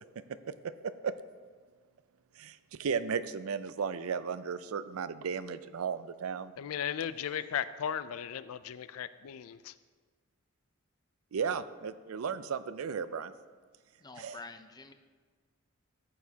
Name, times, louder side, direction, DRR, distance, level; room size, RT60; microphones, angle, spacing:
voice 1, 2.4-6.5 11.3-13.3 14.2-14.4, right 6 dB, 90° right, 13 dB, 0.4 m, -35 dB
voice 2, 6.6-9.7, left 8 dB, 85° left, 14 dB, 0.4 m, -36 dB
voice 3, 14.0-14.9, left 3 dB, 20° left, 8 dB, 0.5 m, -47 dB
13.5 x 8.2 x 2.8 m, 1.5 s
head